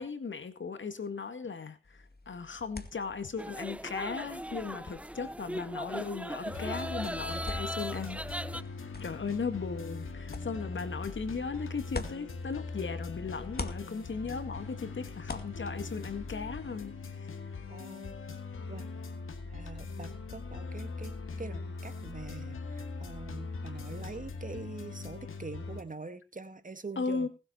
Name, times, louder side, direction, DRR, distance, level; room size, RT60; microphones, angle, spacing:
voice 1, 0.0-8.2 9.0-17.0 27.0-27.3, left 5 dB, 70° left, 10 dB, 2.0 m, -37 dB
sound 1, 1.8-13.0 13.3-16.7, left 3 dB, 50° left, 2.2 m, -46 dB
sound 2, 3.4-8.6, right 1 dB, 5° right, 0.9 m, -38 dB
sound 3, 6.5-25.8, left 4 dB, 85° left, 2.1 m, -41 dB
voice 2, 17.7-18.2 18.7-18.9 19.5-27.3, right 3 dB, 40° right, 10 dB, 2.1 m, -44 dB
19.0 x 8.0 x 4.4 m, 0.30 s
cardioid pair, 45°, 21 cm